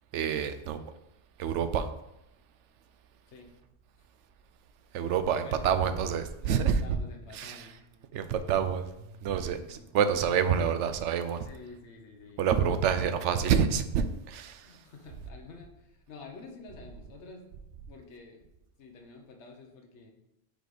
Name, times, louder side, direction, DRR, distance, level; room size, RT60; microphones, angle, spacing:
voice 1, 0.1-0.8 1.4-1.9 4.9-7.0 7.3-7.7 8.1-8.9 9.2-11.5 12.4-14.8, right 7 dB, 85° right, 10 dB, 0.9 m, -28 dB
voice 2, 5.1-5.7 6.4-7.7 9.4-9.8 10.1-10.7 11.4-12.4 14.6-17.5 17.9-18.4 18.8-20.1, left 4 dB, 75° left, 2 dB, 1.2 m, -49 dB
5.1 x 3.9 x 4.8 m, 0.86 s
omnidirectional pair, 1.2 m